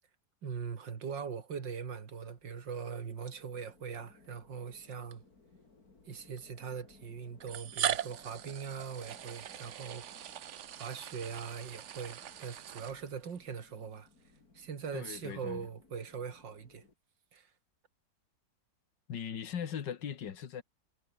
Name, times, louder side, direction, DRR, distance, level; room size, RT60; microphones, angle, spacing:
voice 1, 0.4-5.2 6.1-10.1 10.8-14.1 14.5-16.8 17.3-17.5, right 6 dB, 85° right, 2.8 m, -41 dB
sound 1, 2.0-16.9, left 3 dB, 55° left, 4.2 m, -63 dB
sound 2, 4.1-4.2 5.1-5.2 6.4-6.5 7.4-13.4, right 10 dB, 55° right, 0.9 m, -40 dB
voice 2, 14.9-15.7 19.1-20.6, left 8 dB, 75° left, 2.1 m, -39 dB
omnidirectional pair, 1.9 m